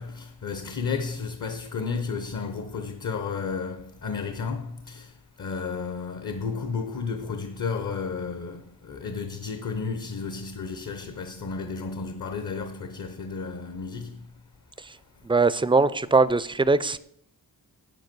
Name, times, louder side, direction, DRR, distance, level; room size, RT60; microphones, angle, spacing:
voice 1, 0.0-5.1 5.4-14.2, left 5 dB, 50° left, 0.9 m, -32 dB
voice 2, 15.2-17.0, right 3 dB, 15° right, 0.4 m, -21 dB
8.4 x 8.1 x 6.1 m
wide cardioid pair, 95°, 39 cm